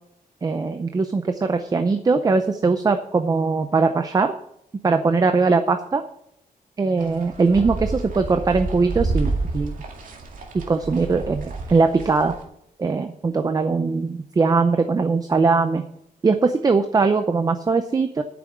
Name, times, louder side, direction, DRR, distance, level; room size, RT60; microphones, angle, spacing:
voice 1, 0.4-4.3 4.8-6.0 6.8-9.7 10.7-12.3 12.8-15.8 16.2-18.2, right 4 dB, 25° right, 8 dB, 0.6 m, -20 dB
sound 1, 7.0-12.4, right 3 dB, 60° right, 2.1 m, -29 dB
8.8 x 7.0 x 8.5 m, 0.77 s
wide cardioid pair, 155°, 15 cm